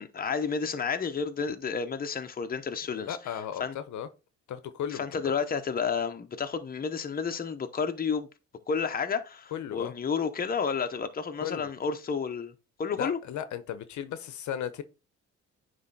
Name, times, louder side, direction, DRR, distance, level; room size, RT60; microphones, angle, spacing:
voice 1, 0.0-3.7 4.9-8.3 8.7-12.5 12.8-13.2, left 5 dB, 30° left, 0.9 m, -31 dB
voice 2, 2.9-4.1 4.5-5.3 9.5-9.9 11.4-11.7 13.0-14.8, left 9 dB, 70° left, 0.8 m, -36 dB
9.4 x 3.2 x 4.0 m
cardioid pair, 90°, 30 cm